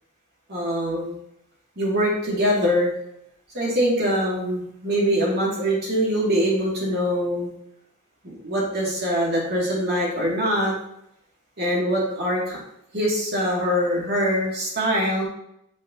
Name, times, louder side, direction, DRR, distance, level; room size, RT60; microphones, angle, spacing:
voice 1, 0.5-1.1 1.8-2.9 3.5-7.5 8.2-10.7 11.6-12.6 12.9-15.2, equal, 50° right, -4 dB, 2.4 m, -23 dB
8.5 x 5.1 x 2.8 m, 0.74 s
head